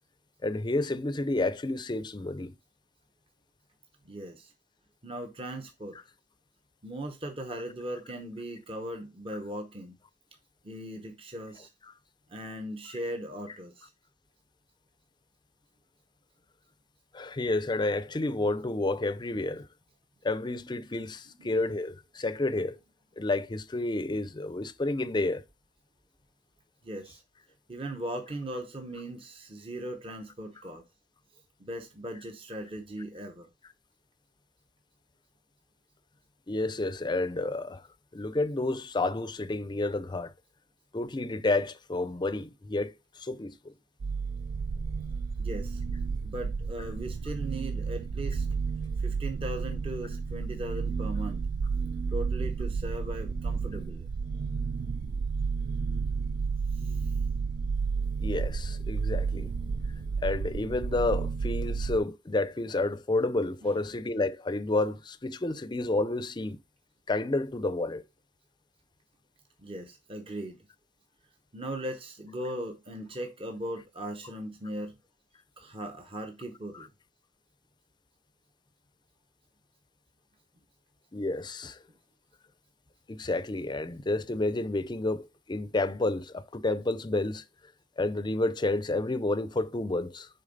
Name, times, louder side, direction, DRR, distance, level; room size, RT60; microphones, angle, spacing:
voice 1, 0.4-2.5 17.1-19.7 20.2-22.8 23.2-25.4 36.5-37.9 38.1-40.3 40.9-43.7 58.2-59.5 60.2-66.6 67.1-68.0 76.7-76.9 81.1-81.8 83.1-87.4 88.0-90.3, left 2 dB, 25° left, 0.5 m, -30 dB
voice 2, 4.0-4.5 5.0-6.0 6.8-9.9 10.6-11.7 12.3-13.9 21.4-21.5 26.8-27.2 27.7-30.8 31.6-33.5 45.4-45.8 46.2-48.5 49.0-51.4 52.1-54.1 56.7-57.1 63.6-63.7 69.6-70.6 71.5-74.9 75.6-76.9, right 1 dB, 30° right, 0.8 m, -38 dB
sound 1, 44.0-62.0, right 5 dB, 55° right, 0.3 m, -31 dB
6.5 x 4.4 x 3.9 m
head